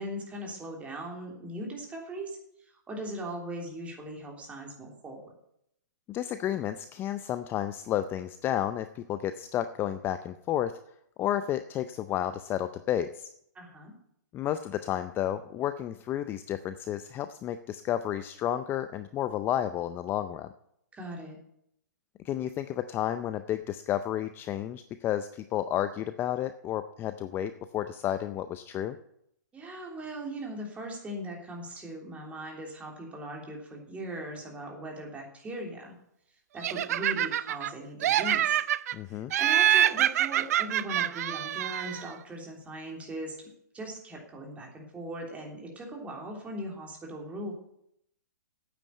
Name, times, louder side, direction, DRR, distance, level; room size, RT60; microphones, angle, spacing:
voice 1, 0.0-2.4 2.7-5.3 13.5-13.9 20.9-21.4 29.5-35.9 36.5-38.6 39.4-43.5 43.7-47.5, right 1 dB, 15° right, 0 dB, 3.3 m, -39 dB
voice 2, 6.1-10.8 11.2-13.3 14.3-20.5 22.2-29.0 38.9-39.3, left 11 dB, 20° left, 11 dB, 0.5 m, -31 dB
Laughter, 36.6-37.7 38.0-38.9 39.3-42.1, right 11 dB, 55° right, 0.5 m, -26 dB
9.2 x 8.5 x 8.5 m, 0.75 s
hypercardioid pair, 135°, 10 cm